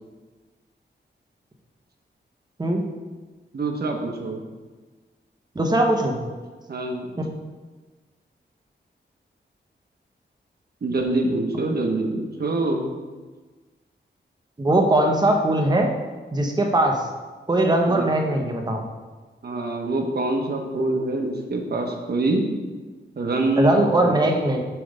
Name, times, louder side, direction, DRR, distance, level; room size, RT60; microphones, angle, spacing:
voice 1, 3.5-4.4 6.7-7.1 10.8-12.9 17.9-18.1 19.4-22.4 23.2-24.2, right 2 dB, 55° right, 2 dB, 1.0 m, -25 dB
voice 2, 5.5-6.2 14.6-15.9 16.3-17.0 17.5-18.8 23.6-24.7, right 1 dB, 20° right, 2 dB, 0.9 m, -20 dB
7.6 x 3.4 x 5.1 m, 1.3 s
wide cardioid pair, 105°, 19 cm